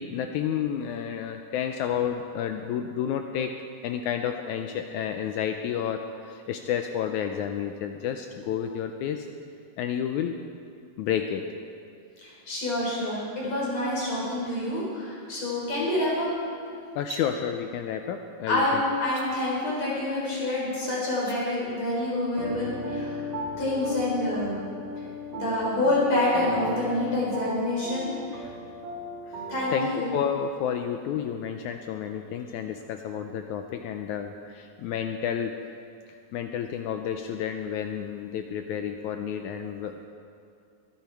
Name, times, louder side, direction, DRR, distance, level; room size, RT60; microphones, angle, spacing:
voice 1, 0.0-3.5 3.8-9.3 9.8-10.4 11.0-11.5 17.0-18.8 28.4-28.5 29.3-29.4 29.7-35.5 36.1-40.1, left 8 dB, 80° left, 5 dB, 1.9 m, -30 dB
voice 2, 12.2-16.3 18.5-23.2 23.6-24.6 25.3-28.1 29.5-30.1, left 1 dB, 55° left, -5 dB, 5.1 m, -27 dB
sound 1, 16.9-17.3 19.0-19.3 21.1-21.4, right 3 dB, 40° right, 1.1 m, -40 dB
sound 2, 22.4-29.8, left 1 dB, 80° right, 3.7 m, -36 dB
22.0 x 10.5 x 4.7 m, 2.4 s
omnidirectional pair, 3.8 m